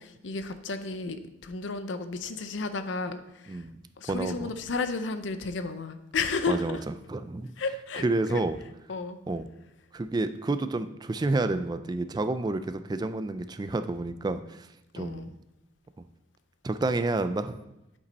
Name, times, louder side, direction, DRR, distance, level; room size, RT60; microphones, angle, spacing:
voice 1, 0.0-3.6 4.0-6.8 7.6-8.0 8.3-8.4 8.9-9.2 15.0-15.3, left 3 dB, 80° left, 10 dB, 0.6 m, -33 dB
voice 2, 3.5-3.8 4.1-4.5 6.5-7.5 8.0-8.6 9.3-9.5 9.9-14.7 14.9-15.3 16.6-17.6, right 2 dB, 20° right, 11 dB, 0.3 m, -29 dB
8.3 x 5.3 x 4.1 m, 0.88 s
head